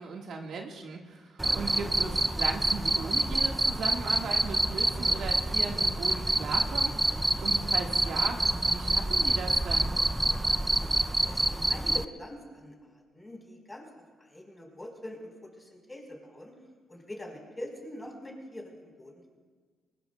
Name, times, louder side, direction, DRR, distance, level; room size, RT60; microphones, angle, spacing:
voice 1, 0.0-8.4 8.7-9.9, right 4 dB, 65° right, 1 dB, 1.6 m, -37 dB
Cricket, 1.4-12.0, right 1 dB, 10° right, 0.4 m, -27 dB
voice 2, 11.3-13.9 14.2-16.5 16.9-19.3, left 1 dB, 15° left, 0 dB, 4.2 m, -44 dB
22.5 x 20.0 x 2.3 m, 1.5 s
cardioid pair, 90°, 0 cm